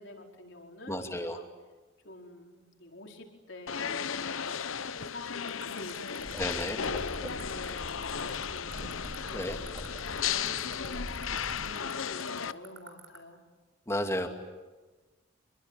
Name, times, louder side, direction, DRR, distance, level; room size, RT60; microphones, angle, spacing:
voice 1, 0.0-1.4 2.0-13.4, left 1 dB, 65° left, 2 dB, 4.7 m, -48 dB
voice 2, 0.9-1.4 6.4-6.8 9.3-9.6 13.9-14.3, left 1 dB, 15° left, 5 dB, 2.6 m, -32 dB
sound 1, 3.7-12.5, left 7 dB, 85° left, 0.9 m, -35 dB
sound 2, 5.5-13.2, right 9 dB, 85° right, 4.1 m, -46 dB
sound 3, 6.2-11.7, equal, 15° right, 3.2 m, -44 dB
27.0 x 23.0 x 9.2 m, 1.2 s
head